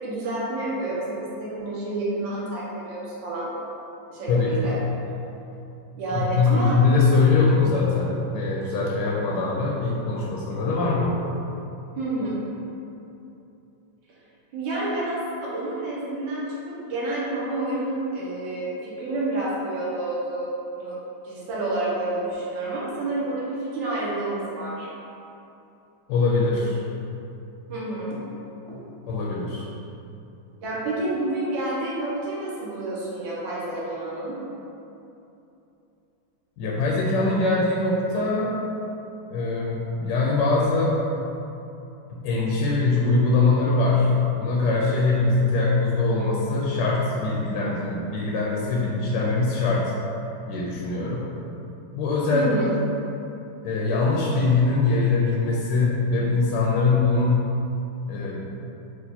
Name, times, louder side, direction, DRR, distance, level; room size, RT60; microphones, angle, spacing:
voice 1, 0.0-3.5 4.1-4.7 6.0-6.8 12.0-12.4 14.5-20.5 20.8-21.0 21.2-24.9 27.7-28.2 28.7-28.8 30.6-34.4 52.3-52.7, right 2 dB, 70° right, -7 dB, 1.7 m, -29 dB
voice 2, 4.3-4.6 6.1-11.2 26.1-26.8 29.1-29.7 36.6-38.6 39.3-41.0 42.1-49.9 50.5-51.2 51.9-52.5 53.6-57.4 58.1-58.5, left 3 dB, 75° left, -4 dB, 1.1 m, -22 dB
5.0 x 2.3 x 4.2 m, 2.9 s
omnidirectional pair, 2.3 m